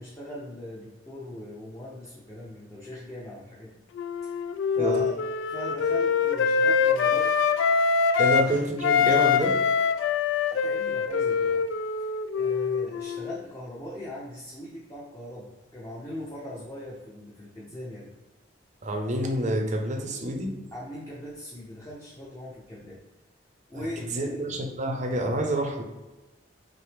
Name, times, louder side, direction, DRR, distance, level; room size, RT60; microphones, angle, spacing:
voice 1, 0.0-3.8 4.2-4.4 4.7-5.2 5.5-7.4 10.6-11.7 12.0-12.1 12.4-18.1 20.7-23.0 23.7-24.4, left 1 dB, 15° left, -6 dB, 0.6 m, -40 dB
Wind instrument woodwind instrument, 4.0-8.5 8.8-13.3, left 6 dB, 70° left, 0.3 m, -24 dB
voice 2, 4.8-5.1 8.2-9.6 18.8-20.7 24.0-25.8, right 1 dB, 40° right, 3 dB, 0.6 m, -27 dB
5.7 x 2.1 x 3.4 m, 1.1 s
head